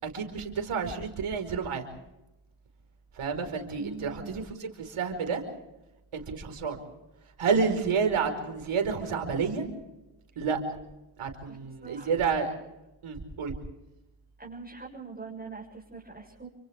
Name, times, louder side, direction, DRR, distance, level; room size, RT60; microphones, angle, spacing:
voice 1, 0.0-1.9 3.2-5.4 6.1-6.8 7.4-9.6 10.4-10.6 11.2-12.5 13.0-13.5, right 5 dB, 75° right, 5 dB, 5.1 m, -29 dB
voice 2, 3.8-4.4 11.5-12.2 14.4-16.5, right 4 dB, 20° right, -4 dB, 7.5 m, -43 dB
30.0 x 25.5 x 3.7 m, 0.94 s
cardioid pair, 50°, 50 cm